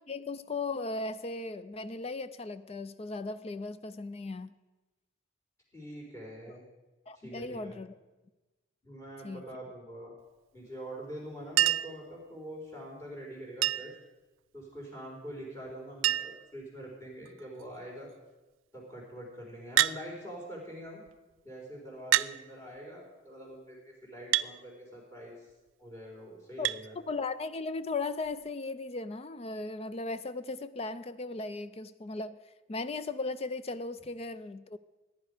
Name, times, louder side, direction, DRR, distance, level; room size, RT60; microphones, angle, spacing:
voice 1, 0.1-4.5 7.1-8.0 9.2-9.4 26.6-26.7 27.1-32.4 32.7-34.8, left 3 dB, 30° left, 13 dB, 0.4 m, -37 dB
voice 2, 5.7-6.6 7.1-7.8 8.8-10.1 10.5-14.0 14.5-18.1 18.7-21.0 21.4-25.5 25.8-26.9, equal, 15° left, -2 dB, 4.2 m, -44 dB
Chink clink, 11.6-12.0 13.6-14.0 15.4-15.5 15.7-15.8 16.0-16.5 17.2-17.6 19.8-20.0 21.1-21.2 22.1-22.3 24.3-24.5 26.6-26.8 28.2-28.3, right 13 dB, 85° right, 0.3 m, -27 dB
15.0 x 10.5 x 5.0 m, 1.1 s
head